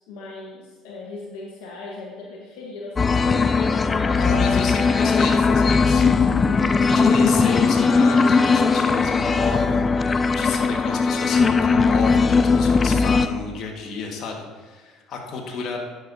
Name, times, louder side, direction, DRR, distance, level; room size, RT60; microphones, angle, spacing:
voice 1, 0.0-4.2, left 3 dB, 75° left, -3 dB, 1.2 m, -39 dB
sound 1, 3.0-13.3, left 4 dB, 30° left, 0.4 m, -19 dB
voice 2, 4.2-6.3 6.8-15.8, left 4 dB, 60° left, 1 dB, 1.5 m, -31 dB
11.0 x 6.4 x 2.7 m, 1.3 s
hypercardioid pair, 75°, 0 cm